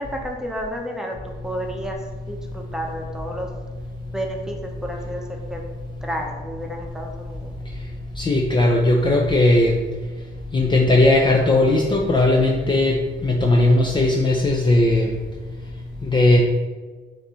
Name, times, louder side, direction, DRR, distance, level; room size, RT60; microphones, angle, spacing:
voice 1, 0.0-3.5 4.1-5.2 5.5-5.6 6.0-7.5, equal, 5° right, 0 dB, 0.8 m, -31 dB
voice 2, 8.2-9.8 10.5-15.1 16.0-16.4, left 2 dB, 25° left, 0 dB, 0.5 m, -17 dB
6.4 x 2.7 x 3.1 m, 1.4 s
cardioid pair, 90°, 20 cm